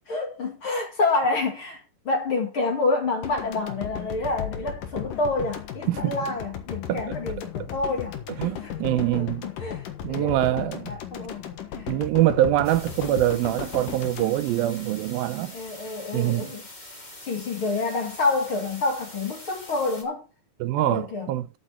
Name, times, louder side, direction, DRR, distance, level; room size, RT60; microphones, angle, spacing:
voice 1, 0.1-11.9 15.5-16.6 17.2-20.2 20.8-21.3, left 3 dB, 40° left, 2.5 m, -28 dB
sound 1, 3.2-15.4, left 9 dB, 65° left, 2.9 m, -36 dB
voice 2, 8.4-9.5 10.0-10.9 11.9-15.6 16.1-16.5 20.6-21.5, right 14 dB, 80° right, 2.4 m, -24 dB
sound 2, 12.6-20.0, left 1 dB, 15° left, 1.7 m, -44 dB
13.0 x 6.9 x 4.3 m
omnidirectional pair, 4.3 m